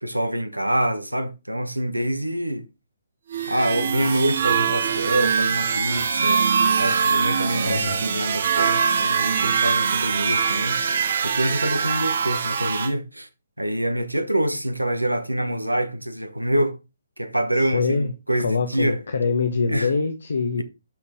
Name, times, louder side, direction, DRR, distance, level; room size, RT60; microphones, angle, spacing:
voice 1, 0.0-2.6 3.5-13.3 13.6-16.8 17.2-19.0 19.7-19.9, right 1 dB, 90° right, 1.1 m, -26 dB
sound 1, 3.3-12.9, right 6 dB, 50° right, 0.9 m, -23 dB
voice 2, 7.6-8.0 17.6-18.1 18.4-20.6, left 4 dB, 65° left, 1.1 m, -24 dB
11.5 x 4.2 x 3.6 m
figure-of-eight pair, 135°, 0 cm